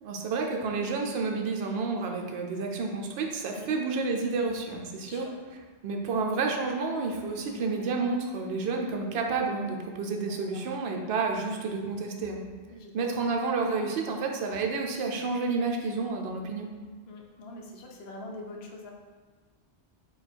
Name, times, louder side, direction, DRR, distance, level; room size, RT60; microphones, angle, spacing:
voice 1, 0.0-5.3 5.8-12.4 12.9-16.7, right 4 dB, 65° right, 2 dB, 0.8 m, -30 dB
voice 2, 5.0-5.3 7.4-7.6 10.3-10.7 12.7-13.2 17.1-18.9, left 2 dB, 65° left, 1 dB, 0.9 m, -44 dB
4.7 x 2.3 x 4.4 m, 1.4 s
omnidirectional pair, 1.1 m